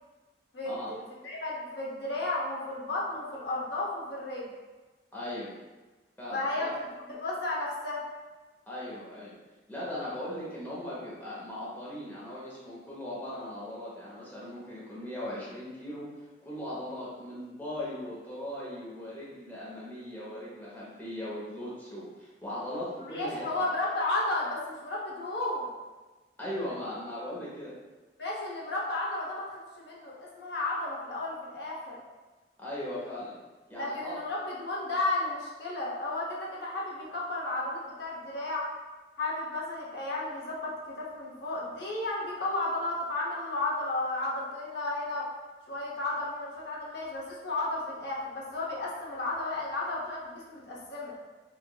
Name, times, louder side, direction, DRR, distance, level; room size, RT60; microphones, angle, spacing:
voice 1, 0.5-4.5 6.3-8.0 23.0-25.7 28.2-32.0 33.8-38.7 39.2-45.3 45.7-51.1, left 2 dB, 70° left, -4 dB, 0.7 m, -33 dB
voice 2, 5.1-5.5 6.2-6.7 8.7-9.3 9.7-23.5 26.4-27.7 32.6-33.3 33.7-34.1, left 1 dB, 10° left, -7 dB, 0.9 m, -38 dB
4.7 x 2.5 x 2.3 m, 1.2 s
head